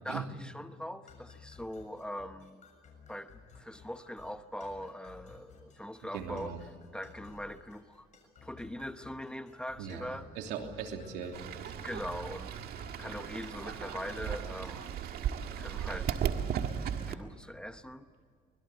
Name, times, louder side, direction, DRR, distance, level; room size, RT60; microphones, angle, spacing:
voice 1, 0.0-2.6 3.1-6.5 6.9-8.1 8.4-10.3 11.8-12.6 13.0-15.0 15.5-16.2 17.1-18.1, left 1 dB, 5° left, 9 dB, 1.1 m, -42 dB
sound 1, 1.1-15.1, left 5 dB, 45° left, 7.0 m, -55 dB
voice 2, 6.0-6.6 9.8-11.4, right 7 dB, 90° right, 3 dB, 3.1 m, -39 dB
Fowl / Bird, 11.3-17.2, right 9 dB, 70° right, 1.8 m, -36 dB
24.5 x 22.0 x 8.0 m, 2.1 s
cardioid pair, 110°, 17 cm